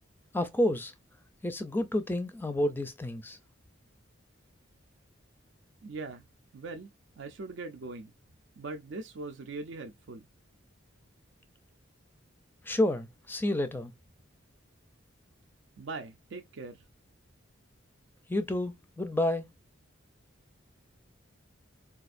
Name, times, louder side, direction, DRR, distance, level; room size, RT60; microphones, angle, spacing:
voice 1, 0.3-0.9 1.4-3.4 12.7-13.9 18.3-19.5, left 1 dB, 10° left, 0.4 m, -29 dB
voice 2, 5.8-6.2 6.5-6.9 7.2-8.1 8.6-10.2 15.8-16.8, right 3 dB, 65° right, 0.5 m, -41 dB
4.1 x 2.4 x 2.5 m
head